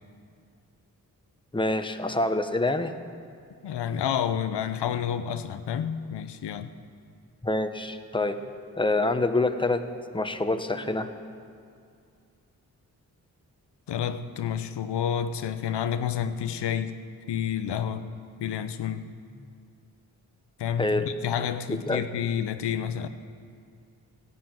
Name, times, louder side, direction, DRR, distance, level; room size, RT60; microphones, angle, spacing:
voice 1, 1.5-2.9 7.4-8.4 8.8-9.9 10.1-11.1 20.8-21.1 21.7-22.0, left 2 dB, 10° left, 8 dB, 1.2 m, -26 dB
voice 2, 3.6-6.7 13.9-17.0 17.3-18.1 18.4-19.1 20.6-23.1, left 8 dB, 85° left, 11 dB, 0.7 m, -29 dB
15.0 x 9.4 x 9.2 m, 2.3 s
cardioid pair, 40°, 40 cm